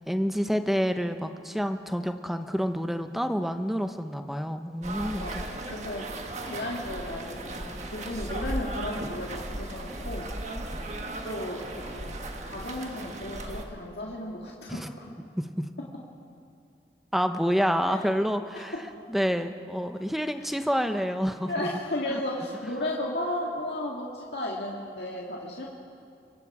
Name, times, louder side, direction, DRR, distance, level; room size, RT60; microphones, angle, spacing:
voice 1, 0.0-5.4 14.7-14.9 15.4-15.7 17.1-18.7 19.1-21.7 22.1-22.2, equal, ahead, 7 dB, 0.8 m, -28 dB
sound 1, 4.8-13.6, right 1 dB, 40° right, 1.5 m, -36 dB
voice 2, 5.1-6.1 6.5-10.6 11.2-11.6 11.9-12.2 12.5-15.1 17.9-18.0 20.4-20.5 21.5-25.6, left 1 dB, 70° left, -3 dB, 1.9 m, -34 dB
24.5 x 23.0 x 4.9 m, 2.5 s
head